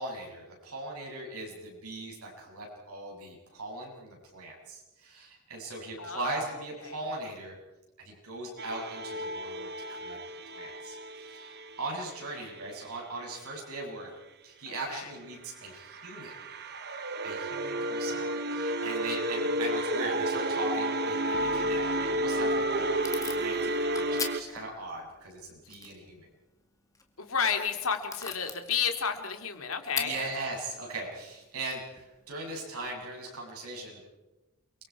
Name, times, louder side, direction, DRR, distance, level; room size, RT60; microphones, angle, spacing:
voice 1, 0.0-7.6 8.0-10.2 10.5-14.1 14.4-16.4 17.2-18.2 18.5-26.2 30.0-34.0, right 2 dB, 80° right, -1 dB, 7.6 m, -39 dB
voice 2, 6.0-7.0 14.9-15.1 17.7-18.5 18.8-18.9 27.2-30.2, left 6 dB, 70° left, 6 dB, 2.5 m, -32 dB
sound 1, 8.6-12.6 15.7-24.4, right 1 dB, 50° right, 1.1 m, -31 dB
sound 2, 21.3-25.3, left 2 dB, 35° left, 1.8 m, -52 dB
Packing tape duct tape / Tearing, 22.1-32.9, left 4 dB, 15° left, 1.9 m, -44 dB
29.5 x 23.5 x 4.8 m, 1.0 s
head